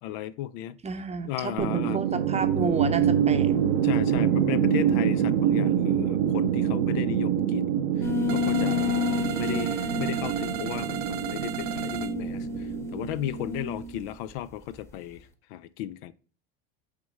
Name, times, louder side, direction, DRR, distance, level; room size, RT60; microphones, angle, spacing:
voice 1, 0.0-0.8 1.2-2.0 3.8-16.1, left 12 dB, 65° left, 0.5 m, -35 dB
voice 2, 0.8-3.5, right 5 dB, 20° right, 0.7 m, -30 dB
sound 1, 1.6-13.7, right 9 dB, 90° right, 0.8 m, -26 dB
sound 2, 8.0-14.1, left 6 dB, 10° left, 1.0 m, -31 dB
sound 3, 8.3-12.1, right 15 dB, 50° right, 0.4 m, -37 dB
6.1 x 3.7 x 5.4 m
supercardioid pair, 105°, 33 cm